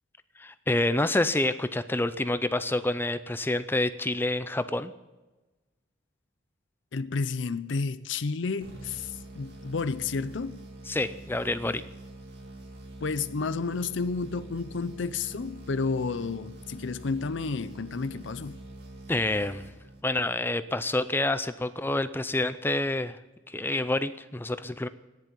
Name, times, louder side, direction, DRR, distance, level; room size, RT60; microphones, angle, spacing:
voice 1, 0.4-4.9 10.9-11.8 19.1-19.6 20.0-23.2 23.5-24.9, left 2 dB, 10° left, 0.5 m, -28 dB
voice 2, 6.9-10.6 13.0-18.6, left 4 dB, 65° left, 0.6 m, -31 dB
sound 1, 8.6-20.3, right 2 dB, 50° right, 2.8 m, -45 dB
14.0 x 10.5 x 8.9 m
head